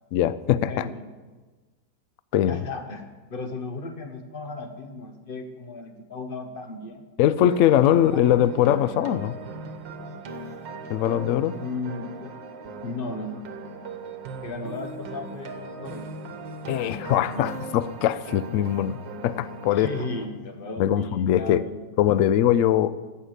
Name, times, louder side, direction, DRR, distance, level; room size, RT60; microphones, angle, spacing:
voice 1, 0.1-0.9 2.3-2.6 7.2-9.4 10.9-11.6 16.7-19.9 20.8-21.6 22.0-23.0, left 11 dB, 90° left, 16 dB, 0.7 m, -21 dB
voice 2, 0.7-1.1 2.5-7.1 7.9-8.5 11.5-12.3 12.8-13.8 14.4-16.2 16.8-17.6 19.7-22.4, left 3 dB, 35° left, 6 dB, 1.1 m, -36 dB
sound 1, 7.5-20.3, right 3 dB, 90° right, 1.7 m, -39 dB
15.5 x 5.7 x 8.0 m, 1.3 s
omnidirectional pair, 1.9 m